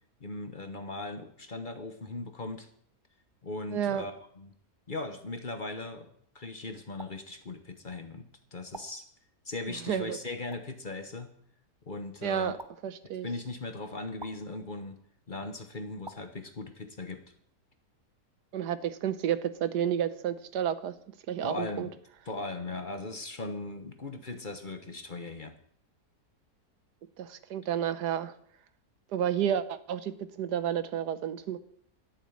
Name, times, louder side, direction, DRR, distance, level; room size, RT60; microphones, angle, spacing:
voice 1, 0.2-2.7 3.4-4.5 4.9-6.1 6.3-8.3 8.5-9.0 9.4-11.3 11.8-12.5 13.2-15.0 15.3-17.2 21.4-21.9 22.3-25.5, left 2 dB, 35° left, 7 dB, 1.1 m, -38 dB
voice 2, 3.7-4.0 9.9-10.2 12.2-12.6 12.8-13.3 18.5-20.9 21.3-21.9 27.2-28.3 29.1-31.6, right 9 dB, 90° right, 13 dB, 1.4 m, -31 dB
sound 1, 7.0-7.1 8.7-8.9 10.5-10.6 12.6-12.7 14.2-14.3 16.0-16.2, right 2 dB, 20° right, 0.8 m, -44 dB
12.5 x 7.3 x 8.8 m, 0.66 s
omnidirectional pair, 1.7 m